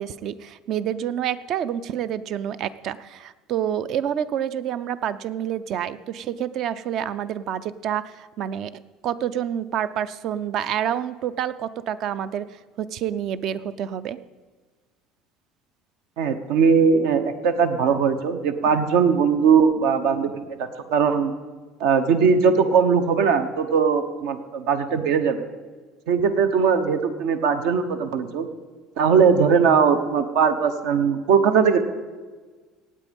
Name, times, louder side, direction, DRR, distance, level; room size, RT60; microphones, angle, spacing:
voice 1, 0.0-8.7 9.0-14.2, right 10 dB, 40° right, 16 dB, 0.5 m, -28 dB
voice 2, 16.2-20.6 20.9-21.3 21.8-25.5 26.1-28.5 29.0-31.8, right 6 dB, 65° right, 9 dB, 1.1 m, -20 dB
17.5 x 8.5 x 5.3 m, 1.4 s
cardioid pair, 175°, 0 cm